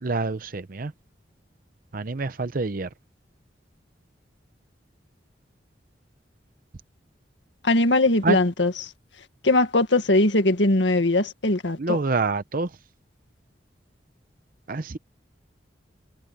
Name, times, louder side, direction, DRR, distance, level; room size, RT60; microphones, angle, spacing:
voice 1, 0.0-0.9 1.9-2.9 8.2-8.4 11.8-12.7 14.7-15.0, right 3 dB, 50° right, 0.7 m, -26 dB
voice 2, 7.6-8.9 9.4-12.0, left 2 dB, 80° left, 1.9 m, -20 dB
head